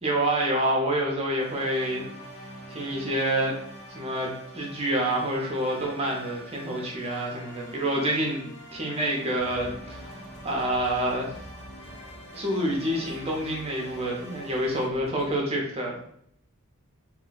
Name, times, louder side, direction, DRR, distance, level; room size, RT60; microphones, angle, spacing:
voice 1, 0.0-2.1 2.7-3.6 3.9-8.4 8.7-10.2 10.4-11.4 12.3-16.1, right 1 dB, 25° right, -1 dB, 0.6 m, -27 dB
sound 1, 1.4-14.9, equal, 80° left, 1.3 m, -45 dB
sound 2, 9.3-15.4, equal, 60° left, 1.0 m, -47 dB
2.4 x 2.2 x 3.8 m, 0.67 s
head